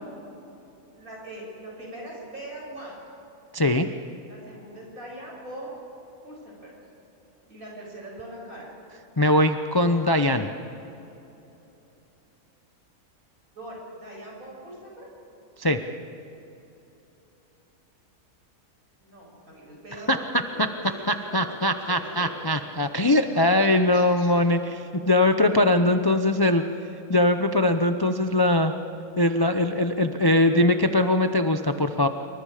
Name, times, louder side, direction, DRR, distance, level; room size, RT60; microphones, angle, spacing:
voice 1, 1.0-3.0 4.3-5.7 6.2-6.8 7.5-8.7 13.5-15.1 19.0-22.4 23.3-23.4 23.7-24.3, right 1 dB, 65° right, -3 dB, 7.9 m, -41 dB
voice 2, 3.5-3.9 9.2-10.5 15.6-15.8 20.1-20.2 21.1-26.6 27.1-28.7 29.2-32.1, left 1 dB, 25° left, 7 dB, 0.6 m, -21 dB
27.0 x 24.0 x 5.0 m, 3.0 s
omnidirectional pair, 1.6 m